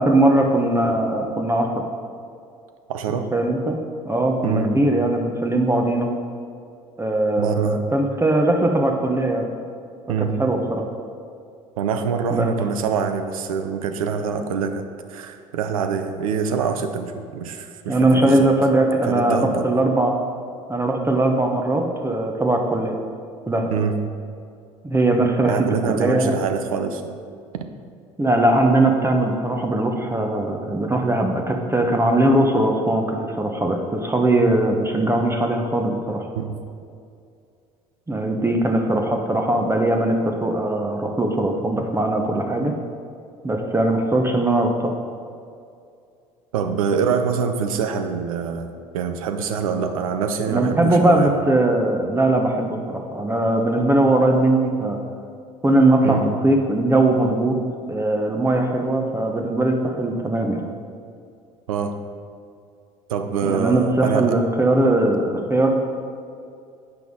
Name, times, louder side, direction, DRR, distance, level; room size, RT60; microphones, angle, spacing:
voice 1, 0.0-1.8 3.3-3.8 4.0-6.1 7.0-9.4 10.4-10.8 12.3-12.5 17.9-20.1 20.7-23.0 23.5-23.7 24.8-26.4 28.2-36.3 38.1-42.7 43.4-44.9 50.5-55.0 55.6-57.6 57.9-60.6 63.4-65.7, right 1 dB, 15° right, 2 dB, 0.9 m, -20 dB
voice 2, 2.9-3.3 4.4-4.7 7.4-7.8 10.1-10.3 11.8-18.5 19.0-19.7 23.7-23.9 25.4-27.2 36.4-36.5 46.5-51.4 56.0-56.2 61.7-62.0 63.1-64.4, right 6 dB, 80° right, 7 dB, 0.6 m, -25 dB
8.8 x 5.8 x 3.7 m, 2.4 s
hypercardioid pair, 65°, 18 cm